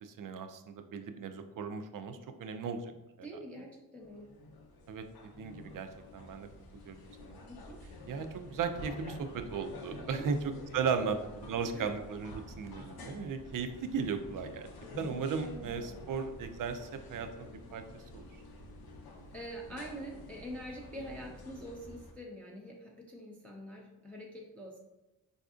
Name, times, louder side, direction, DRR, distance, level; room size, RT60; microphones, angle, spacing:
voice 1, 0.0-2.9 3.2-3.3 4.9-5.0 5.4-6.5 6.8-7.4 8.1-14.7 15.0-18.3, right 5 dB, 50° right, 8 dB, 0.5 m, -36 dB
voice 2, 3.2-4.3 7.4-7.8 10.1-10.3 10.9-11.1 11.7-11.9 19.3-24.8, equal, 5° left, -2 dB, 0.6 m, -45 dB
sound 1, 4.0-22.1, left 1 dB, 55° left, 0.7 m, -49 dB
4.0 x 2.5 x 2.4 m, 0.98 s
supercardioid pair, 45°, 44 cm